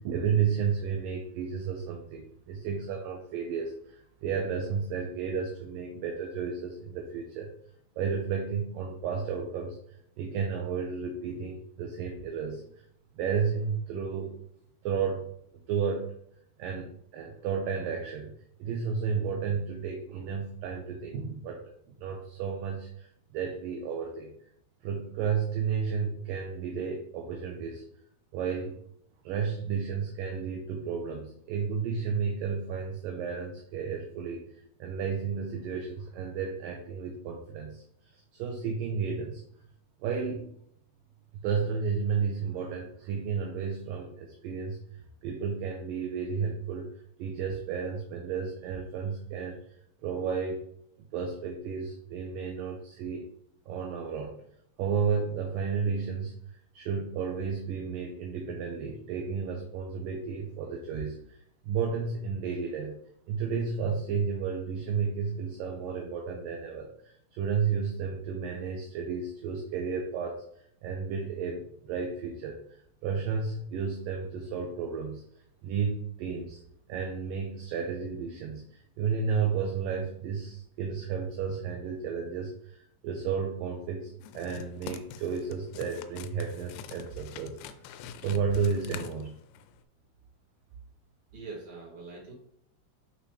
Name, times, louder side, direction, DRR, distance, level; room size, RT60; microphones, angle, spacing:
voice 1, 0.0-7.5 8.0-9.8 10.2-12.6 13.2-14.4 14.8-15.3 15.7-16.1 16.6-18.3 18.6-21.6 22.0-23.1 23.3-24.3 24.8-27.8 28.3-28.8 29.2-34.4 34.8-37.8 38.3-39.4 40.0-40.5 41.4-44.8 45.2-46.9 47.2-49.6 50.0-50.6 51.1-53.2 53.7-54.4 54.8-56.4 56.7-61.4 61.6-63.0 63.3-70.4 70.8-75.2 75.6-76.6 76.9-78.6 79.0-82.8 83.0-87.6 88.2-89.4, right 6 dB, 75° right, 2 dB, 2.2 m, -32 dB
sound 1, 84.2-89.8, left 8 dB, 85° left, 2.4 m, -45 dB
voice 2, 91.3-92.3, right 3 dB, 40° right, -3 dB, 2.6 m, -43 dB
6.3 x 5.7 x 3.3 m, 0.69 s
omnidirectional pair, 4.4 m